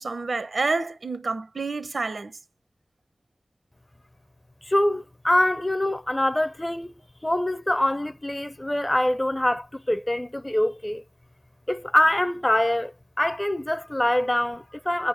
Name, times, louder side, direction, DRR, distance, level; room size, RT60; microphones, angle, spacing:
voice 1, 0.0-2.4, right 3 dB, 75° right, 0.9 m, -28 dB
voice 2, 4.7-6.9 7.2-11.0 11.7-15.1, left 1 dB, 15° left, 0.6 m, -24 dB
9.6 x 3.8 x 6.6 m
wide cardioid pair, 75°, 0 cm